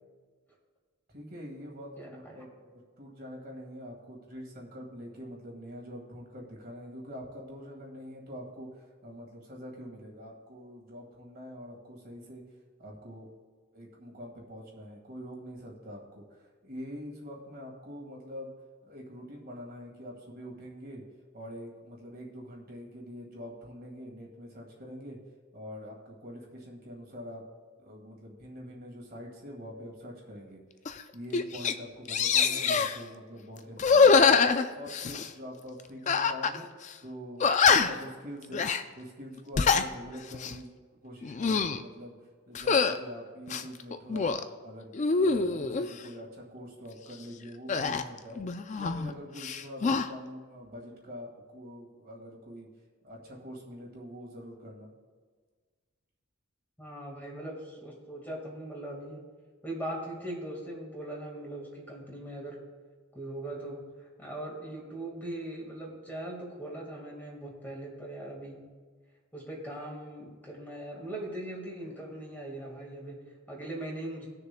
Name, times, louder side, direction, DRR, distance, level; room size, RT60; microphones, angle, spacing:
voice 1, 1.1-12.4 12.8-13.3 13.7-18.5 18.8-21.0 21.3-25.2 25.5-27.4 27.8-30.6 31.1-34.2 34.7-36.7 37.0-38.6 39.0-40.7 41.0-42.2 42.5-44.4 44.6-48.4 48.8-52.7 53.0-54.9, equal, 45° right, -1 dB, 1.7 m, -44 dB
voice 2, 2.0-2.4 56.8-59.2 59.6-62.7 63.1-68.7 69.3-74.3, right 1 dB, 10° left, -2 dB, 1.7 m, -40 dB
sound 1, 30.8-31.0 31.3-31.7 32.1-33.0 33.8-35.3 36.1-36.6 36.8-36.9 37.4-38.1 38.5-38.8 39.4-39.9 40.3-40.6 41.2-41.8 42.5-43.0 43.5-44.4 44.9-45.9 47.7-49.1 49.4-50.1, left 5 dB, 35° left, 0.4 m, -24 dB
20.0 x 6.7 x 2.2 m, 1.5 s
head